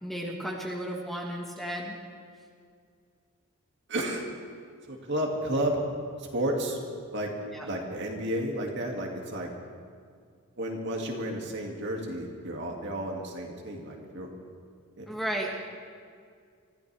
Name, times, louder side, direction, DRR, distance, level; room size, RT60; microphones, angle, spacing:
voice 1, 0.0-2.0 7.5-7.7 15.1-15.6, right 1 dB, ahead, -1 dB, 1.5 m, -34 dB
voice 2, 3.9-4.2 4.9-5.8 6.2-6.8 7.1-7.3 7.6-9.5 10.6-14.3 15.0-15.2, right 1 dB, 55° right, 0 dB, 2.3 m, -32 dB
24.5 x 14.5 x 3.5 m, 2.2 s
head